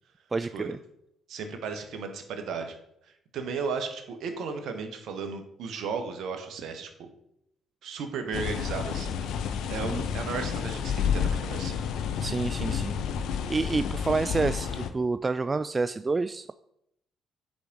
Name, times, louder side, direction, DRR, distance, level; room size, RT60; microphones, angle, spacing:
voice 1, 0.3-0.8 9.9-10.0 12.2-13.0 13.5-16.5, right 3 dB, 30° right, 12 dB, 0.3 m, -28 dB
voice 2, 1.3-2.8 3.3-7.1 7.8-9.4 9.7-11.7, right 5 dB, 65° right, 6 dB, 1.5 m, -35 dB
sound 1, 8.3-14.9, left 7 dB, 70° left, 0.7 m, -30 dB
8.2 x 5.1 x 6.1 m, 0.77 s
hypercardioid pair, 55°, 0 cm